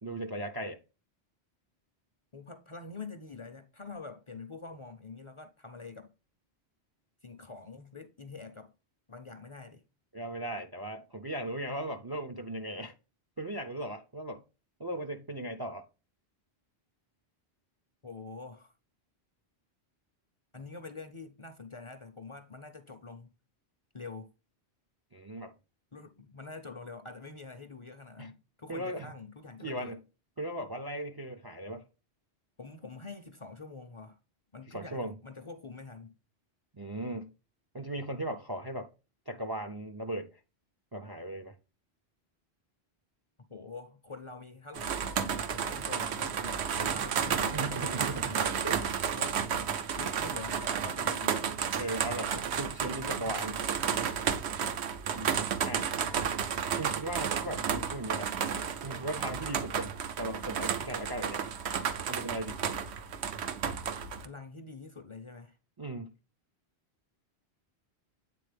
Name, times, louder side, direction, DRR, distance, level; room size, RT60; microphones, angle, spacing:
voice 1, 0.0-0.8 10.1-12.9 13.4-14.4 14.8-15.9 25.1-25.5 28.2-28.3 28.7-29.1 29.6-30.0 30.4-31.8 34.7-35.1 36.7-37.3 37.7-38.9 39.3-40.3 40.9-41.6 47.5-49.2 51.8-53.6 55.1-55.9 56.8-58.4 58.8-59.9 60.2-61.5 62.1-62.6 65.8-66.1, right 1 dB, 35° right, 0.4 m, -37 dB
voice 2, 2.3-6.1 7.2-8.7 9.1-9.8 18.0-18.7 20.5-23.3 23.9-24.3 25.9-30.0 32.6-34.2 34.5-36.2 43.5-48.4 49.1-49.5 49.9-51.6 52.2-54.2 64.2-65.6, left 4 dB, 35° left, 0.5 m, -46 dB
sound 1, 44.7-64.3, right 7 dB, 80° right, 1.0 m, -32 dB
8.4 x 4.0 x 3.3 m
omnidirectional pair, 1.1 m